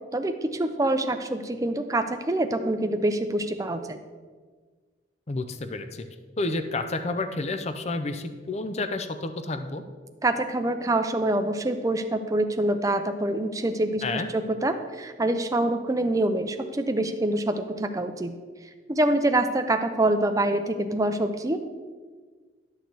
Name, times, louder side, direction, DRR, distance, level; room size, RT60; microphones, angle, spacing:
voice 1, 0.1-4.0 10.2-18.3 18.9-21.6, right 1 dB, 20° right, 7 dB, 0.5 m, -25 dB
voice 2, 5.3-6.1 6.4-9.8 14.0-14.3, left 2 dB, 35° left, 9 dB, 0.5 m, -30 dB
11.5 x 6.5 x 4.0 m, 1.5 s
head